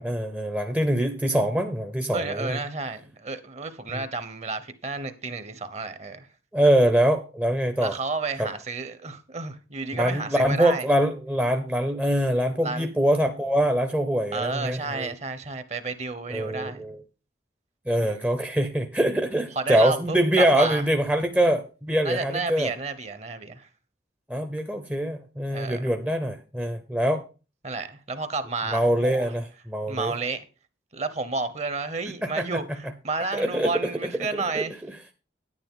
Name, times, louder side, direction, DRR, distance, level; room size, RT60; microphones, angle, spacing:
voice 1, 0.0-2.6 3.9-4.0 6.5-7.9 8.4-8.5 9.9-15.1 16.3-17.0 17.9-22.7 24.3-27.2 28.7-30.1 32.2-32.4 33.3-33.7 34.5-34.6, right 1 dB, 10° right, 0.7 m, -24 dB
voice 2, 2.1-6.3 7.8-10.9 12.6-12.9 14.3-16.8 18.0-18.2 19.5-20.8 22.0-23.7 25.5-25.9 27.6-29.3 29.9-30.4 30.9-34.7, right 3 dB, 35° right, 0.9 m, -31 dB
9.9 x 9.6 x 3.7 m
head